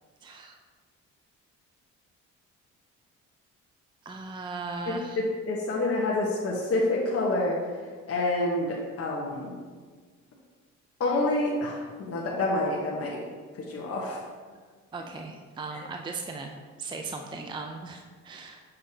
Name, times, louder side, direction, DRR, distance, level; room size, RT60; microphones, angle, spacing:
voice 1, 0.2-0.6 4.0-5.2 14.9-18.6, right 3 dB, 15° right, 4 dB, 0.4 m, -38 dB
voice 2, 4.9-7.6 8.1-9.5 11.0-13.2 13.6-14.2, left 2 dB, 50° left, -4 dB, 1.1 m, -28 dB
6.6 x 5.4 x 2.8 m, 1.5 s
cardioid pair, 90°, 30 cm